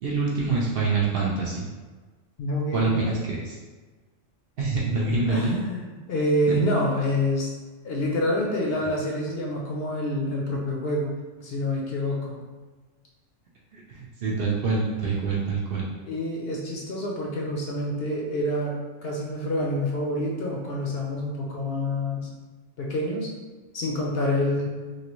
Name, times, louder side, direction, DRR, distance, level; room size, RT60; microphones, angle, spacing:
voice 1, 0.0-1.7 2.7-3.6 4.6-5.6 13.7-15.9, right 3 dB, 60° right, -4 dB, 0.6 m, -26 dB
voice 2, 2.4-3.2 5.3-7.5 7.8-12.4 16.1-22.3 22.8-23.3 23.7-24.7, left 1 dB, 60° left, -2 dB, 0.7 m, -27 dB
3.2 x 2.5 x 2.9 m, 1.3 s
omnidirectional pair, 1.3 m